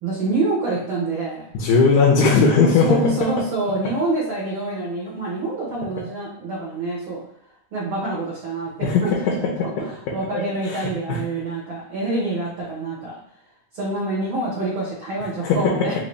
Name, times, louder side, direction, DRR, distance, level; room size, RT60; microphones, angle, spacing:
voice 1, 0.0-1.5 2.8-7.2 7.7-8.7 9.0-9.4 9.8-13.2 13.7-16.0, right 2 dB, 60° right, -7 dB, 1.4 m, -26 dB
voice 2, 1.5-3.0 8.8-9.7 10.3-11.2 15.4-15.9, left 5 dB, 80° left, -2 dB, 2.2 m, -19 dB
5.3 x 2.8 x 3.2 m, 0.68 s
omnidirectional pair, 3.6 m